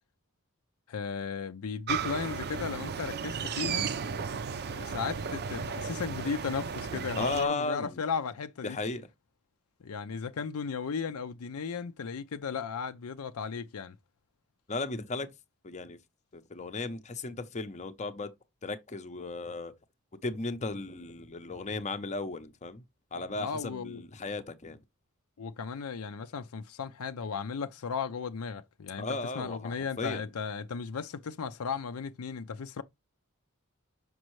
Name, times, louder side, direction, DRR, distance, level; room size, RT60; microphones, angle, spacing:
voice 1, 0.9-3.9 4.6-8.8 9.8-14.0 23.4-24.1 25.4-32.8, left 5 dB, 85° left, 0.5 m, -35 dB
sound 1, 1.9-7.5, right 6 dB, 50° right, 0.5 m, -34 dB
voice 2, 7.2-8.0 8.6-9.1 14.7-15.3 15.6-16.0 16.3-18.3 18.6-19.7 20.2-22.8 23.1-24.8 29.0-30.2, left 3 dB, 30° left, 0.6 m, -35 dB
6.3 x 5.2 x 3.1 m
head